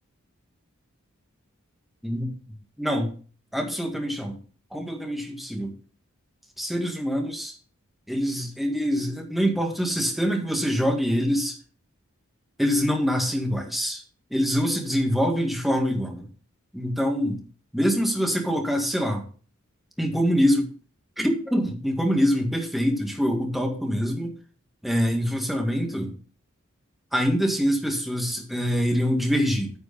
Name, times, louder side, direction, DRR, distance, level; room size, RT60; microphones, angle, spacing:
voice 1, 2.8-3.1 3.5-4.4 4.7-5.8 6.6-7.5 8.1-11.6 12.6-14.0 14.3-16.3 16.7-17.4 17.7-19.2 20.0-20.7 21.2-24.3 24.8-26.1 27.1-29.7, equal, ahead, 1 dB, 1.7 m, -24 dB
9.7 x 4.9 x 5.2 m, 0.40 s
head